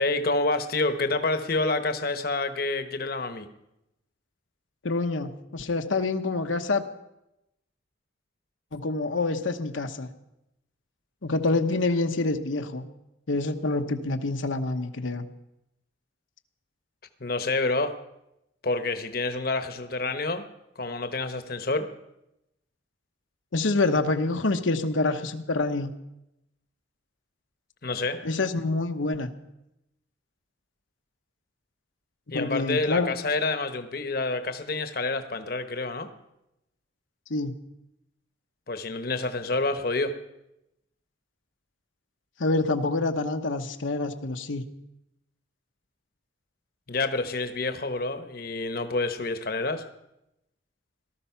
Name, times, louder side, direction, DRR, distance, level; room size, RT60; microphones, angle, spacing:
voice 1, 0.0-3.5 11.5-11.6 17.2-17.9 18.6-20.4 20.8-21.9 27.8-28.2 32.3-36.1 38.7-40.1 46.9-49.8, left 3 dB, 50° left, 9 dB, 1.0 m, -28 dB
voice 2, 4.8-6.8 8.7-10.1 11.2-12.8 13.3-15.2 23.5-25.9 28.2-29.3 32.3-33.1 37.3-37.5 42.4-44.6, left 3 dB, 85° left, 6 dB, 1.1 m, -26 dB
18.5 x 13.0 x 5.8 m, 0.88 s
head